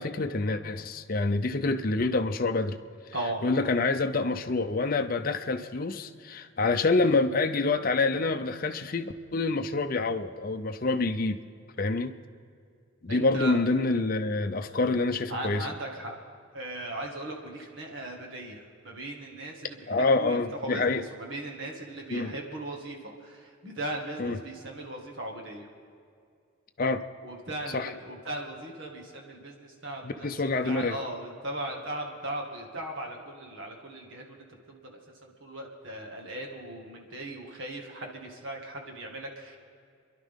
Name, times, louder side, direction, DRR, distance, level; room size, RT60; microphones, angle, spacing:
voice 1, 0.0-2.8 3.4-11.4 11.8-12.1 13.0-15.7 19.9-21.0 22.1-22.3 24.2-24.4 26.8-27.0 27.7-27.9 30.0-31.0, left 3 dB, 40° left, 7 dB, 0.6 m, -27 dB
voice 2, 13.1-13.6 15.3-16.1 16.5-25.7 27.2-39.6, right 1 dB, 60° right, 0 dB, 2.0 m, -38 dB
28.0 x 11.0 x 3.7 m, 2.3 s
head